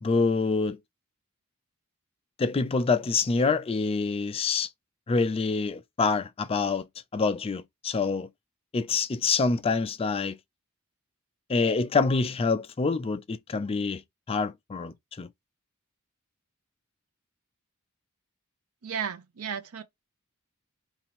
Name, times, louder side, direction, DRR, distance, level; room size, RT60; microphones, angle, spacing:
voice 1, 0.0-0.8 2.4-4.7 5.1-6.9 7.1-8.3 8.7-10.4 11.5-14.0 14.3-15.3, left 4 dB, 25° left, 0.4 m, -26 dB
voice 2, 18.8-19.8, right 7 dB, 90° right, 0.6 m, -34 dB
2.7 x 2.7 x 4.1 m
head